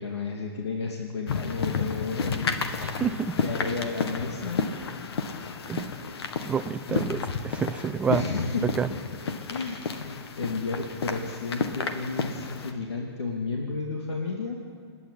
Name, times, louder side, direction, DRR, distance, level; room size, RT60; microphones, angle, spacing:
voice 1, 0.0-2.8 3.4-4.7 6.0-6.2 6.9-7.2 8.1-8.7 9.1-14.6, left 4 dB, 90° left, -1 dB, 2.5 m, -32 dB
sound 1, 1.3-12.7, left 5 dB, 70° left, 1.7 m, -32 dB
voice 2, 2.8-3.3 5.7-5.9 6.4-8.2 8.8-8.9, right 7 dB, 10° right, 9 dB, 0.6 m, -28 dB
28.0 x 9.9 x 9.7 m, 2.3 s
hypercardioid pair, 145°, 14 cm